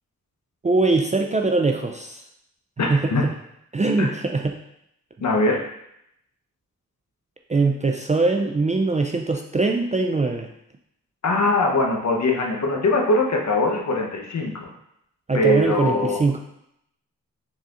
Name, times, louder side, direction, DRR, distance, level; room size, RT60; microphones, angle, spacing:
voice 1, 0.6-2.2 2.9-3.1 3.7-4.6 7.5-10.5 15.3-16.4, right 3 dB, 20° right, 3 dB, 0.3 m, -22 dB
voice 2, 2.8-3.2 4.0-4.1 5.2-5.6 11.2-14.7 15.3-16.2, left 2 dB, 55° left, 0 dB, 0.9 m, -21 dB
4.1 x 3.8 x 2.5 m, 0.77 s
cardioid pair, 55°, 34 cm